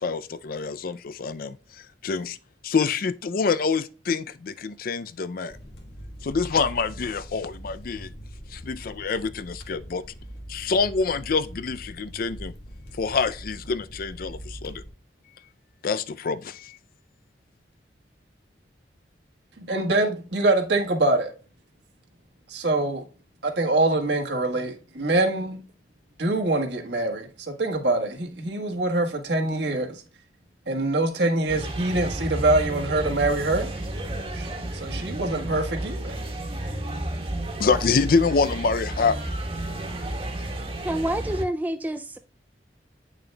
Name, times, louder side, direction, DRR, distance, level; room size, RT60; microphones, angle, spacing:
voice 1, 0.0-1.6 2.0-2.4 2.6-5.5 6.2-8.1 8.5-10.0 10.5-12.5 13.0-14.8 15.8-16.8 37.6-39.2, left 5 dB, 55° left, 0.4 m, -26 dB
sound 1, 5.5-14.9, equal, 70° left, 1.5 m, -42 dB
voice 2, 19.7-21.3 22.5-23.0 23.4-25.6 26.2-30.0 30.7-33.7 34.3-34.5 34.7-36.1, right 2 dB, 70° right, 1.5 m, -24 dB
sound 2, 31.5-41.4, right 1 dB, 35° right, 1.4 m, -32 dB
voice 3, 40.8-42.2, right 1 dB, 10° right, 0.3 m, -28 dB
8.8 x 6.4 x 2.3 m
head